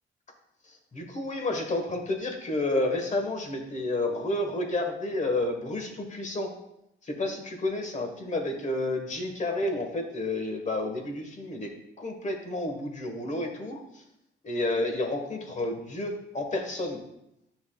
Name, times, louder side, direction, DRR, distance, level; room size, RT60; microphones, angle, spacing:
voice 1, 0.9-6.5 7.0-11.7 12.0-13.8 14.4-17.0, left 2 dB, 35° left, 4 dB, 1.3 m, -30 dB
9.5 x 5.9 x 2.3 m, 0.82 s
cardioid pair, 90°, 20 cm